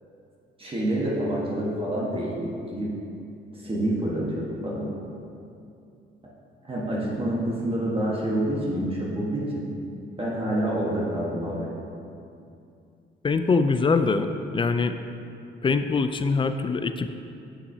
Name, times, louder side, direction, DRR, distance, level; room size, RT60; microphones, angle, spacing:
voice 1, 0.6-2.9 3.5-4.9 6.6-9.6 10.2-11.7, right 1 dB, 30° right, -5 dB, 1.4 m, -27 dB
voice 2, 13.2-14.3 14.5-14.9 15.6-17.1, left 4 dB, 25° left, 9 dB, 0.4 m, -23 dB
9.4 x 5.9 x 2.8 m, 2.6 s
cardioid pair, 90°, 20 cm